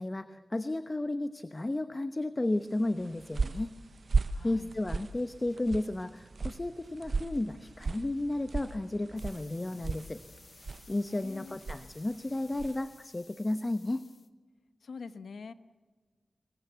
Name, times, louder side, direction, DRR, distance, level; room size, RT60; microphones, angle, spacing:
voice 1, 0.0-3.7 4.4-10.2 10.5-10.6 10.9-14.0, left 2 dB, 25° left, 11 dB, 0.9 m, -33 dB
sound 1, 2.8-12.9, right 4 dB, 60° right, 0.7 m, -37 dB
voice 2, 4.3-4.7 11.1-11.6 14.8-15.5, left 5 dB, 90° left, 12 dB, 1.0 m, -45 dB
sound 2, 5.2-10.5, right 2 dB, 40° right, 3.2 m, -60 dB
sound 3, 9.2-14.3, left 4 dB, 55° left, 1.2 m, -57 dB
25.5 x 22.0 x 8.1 m, 1.4 s
wide cardioid pair, 80°, 0 cm